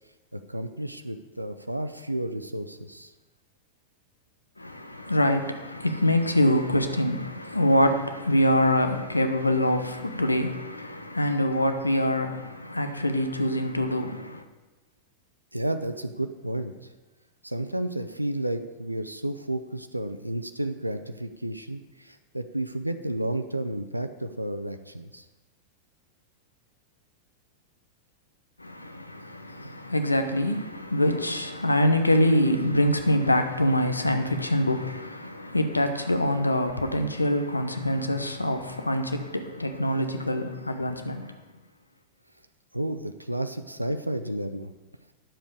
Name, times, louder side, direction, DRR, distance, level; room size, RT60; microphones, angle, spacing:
voice 1, 0.3-3.1 15.5-16.7 17.4-25.2 42.7-44.7, right 1 dB, 85° right, 0.5 m, -32 dB
voice 2, 4.6-14.4 28.6-41.3, left 1 dB, 85° left, 0.8 m, -25 dB
10.0 x 7.3 x 4.8 m
figure-of-eight pair, 90°, 0 cm